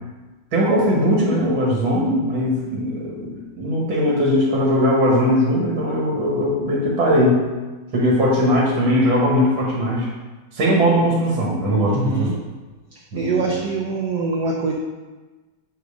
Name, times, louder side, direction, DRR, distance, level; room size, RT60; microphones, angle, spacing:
voice 1, 0.5-7.4 7.9-10.1 10.5-12.3 13.1-13.6, equal, 90° right, -3 dB, 2.4 m, -19 dB
voice 2, 11.9-12.4 13.1-14.7, right 3 dB, 65° right, -1 dB, 1.1 m, -23 dB
8.6 x 3.1 x 4.9 m, 1.2 s
omnidirectional pair, 2.1 m